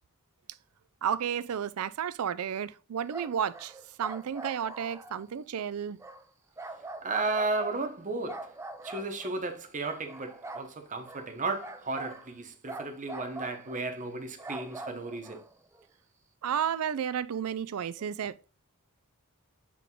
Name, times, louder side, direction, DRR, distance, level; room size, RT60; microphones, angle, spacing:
voice 1, 1.0-6.0 16.4-18.5, right 8 dB, 70° right, 0.4 m, -32 dB
sound 1, 3.0-5.2 6.0-6.2 6.6-7.9 8.3-9.4 9.8-10.7 11.0-11.3 11.6-12.3 12.7-13.8 14.1-15.8, right 2 dB, 15° right, 0.5 m, -43 dB
voice 2, 7.0-8.5 8.8-15.4, right 3 dB, 35° right, 1.0 m, -34 dB
7.5 x 3.5 x 3.7 m
head